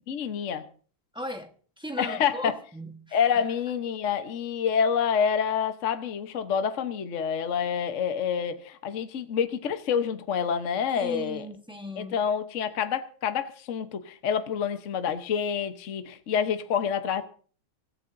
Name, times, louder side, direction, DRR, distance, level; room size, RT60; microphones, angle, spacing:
voice 1, 0.1-0.7 2.0-2.6 3.1-11.5 12.0-17.2, left 7 dB, 45° left, 1.1 m, -27 dB
voice 2, 1.1-3.4 10.9-12.3, equal, 5° right, 0.7 m, -38 dB
24.5 x 13.5 x 2.6 m
omnidirectional pair, 2.2 m